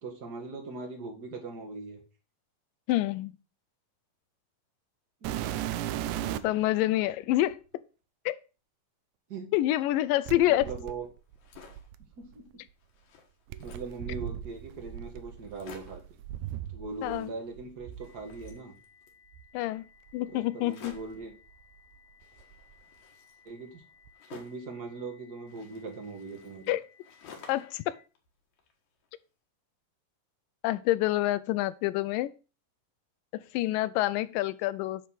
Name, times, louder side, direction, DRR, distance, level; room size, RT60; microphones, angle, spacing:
voice 1, 0.0-2.0 5.2-5.3 5.9-6.6 9.3-9.5 10.5-11.1 12.2-12.6 13.6-16.0 16.7-18.7 20.3-21.3 23.4-23.8 24.3-26.7, right 3 dB, 40° right, 1.5 m, -40 dB
voice 2, 2.9-3.3 6.4-7.6 8.3-8.4 9.5-10.7 17.0-17.3 19.5-19.8 20.1-21.0 26.7-26.8 27.5-28.0 30.6-32.3 33.3-35.0, left 15 dB, 85° left, 2.2 m, -27 dB
sound 1, 5.2-6.6 7.5-7.6 10.3-12.3 13.5-17.2 17.5-18.6 19.3-19.5 20.1-20.2 20.9-22.0 22.2-22.7 24.1-24.2, right 12 dB, 80° right, 1.8 m, -38 dB
sound 2, 11.2-12.0 12.5-12.6 12.8-14.0 14.7-14.8 15.0-15.1 15.4-16.1 16.9-17.7 17.9-19.2 20.6-21.3 22.2-24.7 25.5-27.8 28.2-29.1, left 6 dB, 65° left, 2.7 m, -53 dB
sound 3, 18.0-28.0, left 6 dB, 20° right, 0.7 m, -61 dB
10.0 x 3.7 x 6.2 m
omnidirectional pair, 3.9 m